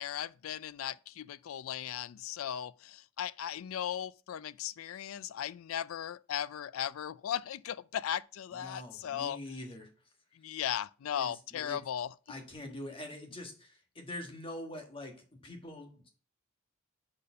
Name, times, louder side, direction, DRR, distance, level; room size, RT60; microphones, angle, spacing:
voice 1, 0.0-9.4 10.4-12.1, left 9 dB, 80° left, 0.4 m, -37 dB
voice 2, 8.5-9.9 11.1-11.8 12.3-16.1, left 1 dB, 25° left, 1.4 m, -44 dB
5.1 x 4.4 x 5.4 m
head